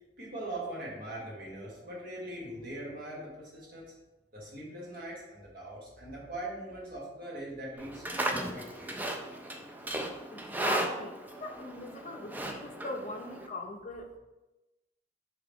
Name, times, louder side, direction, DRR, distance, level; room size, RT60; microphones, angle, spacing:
voice 1, 0.2-3.9 4.3-8.9 12.1-12.2, right 1 dB, 50° right, -5 dB, 1.5 m, -41 dB
Livestock farm animals working animals, 7.8-13.5, right 1 dB, 10° right, 0.3 m, -36 dB
voice 2, 10.3-14.2, left 2 dB, 40° left, 3 dB, 0.5 m, -41 dB
4.7 x 2.9 x 3.5 m, 1.0 s
head